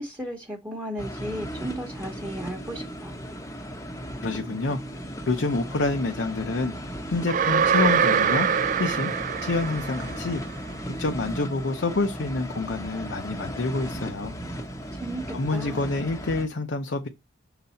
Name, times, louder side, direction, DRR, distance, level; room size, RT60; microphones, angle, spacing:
voice 1, 0.0-3.2 14.9-15.8, right 1 dB, 10° right, 1.0 m, -35 dB
sound 1, 1.0-16.5, equal, 15° left, 0.7 m, -36 dB
voice 2, 4.2-5.0 5.3-6.7 7.1-8.5 8.8-9.1 9.4-10.4 11.0-14.3 15.3-17.1, left 3 dB, 70° left, 0.7 m, -27 dB
sound 2, 7.3-10.4, right 7 dB, 40° right, 0.3 m, -23 dB
6.6 x 4.0 x 4.1 m
head